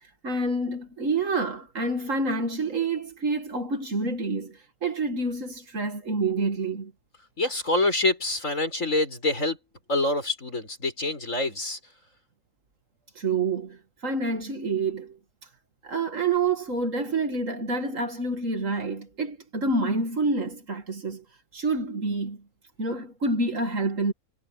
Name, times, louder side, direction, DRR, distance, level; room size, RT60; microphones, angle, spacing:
voice 1, 0.2-6.9 13.2-15.2 15.8-21.2 21.5-22.4 22.8-24.1, right 3 dB, 60° right, 2.5 m, -28 dB
voice 2, 7.4-9.6 9.9-11.8, left 2 dB, 60° left, 7.2 m, -26 dB
omnidirectional pair, 1.5 m